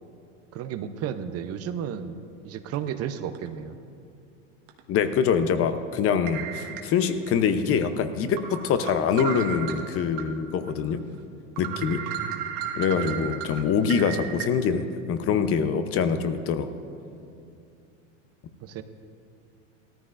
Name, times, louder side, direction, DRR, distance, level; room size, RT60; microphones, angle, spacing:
voice 1, 0.5-3.8 11.6-12.5 12.9-13.3 16.0-16.3 18.6-18.8, right 8 dB, 40° right, 10 dB, 0.7 m, -34 dB
sound 1, 2.7-2.9 3.4-3.5 4.7-4.8 6.3-7.3 7.8-7.9 8.4-10.3 10.7-10.8 11.2-11.3 11.6-14.5, right 9 dB, 55° right, 1.5 m, -34 dB
voice 2, 4.9-11.0 11.6-12.0 12.8-16.7, left 6 dB, 35° left, 9 dB, 0.8 m, -24 dB
17.5 x 13.5 x 2.6 m, 2.5 s
hypercardioid pair, 105°, 38 cm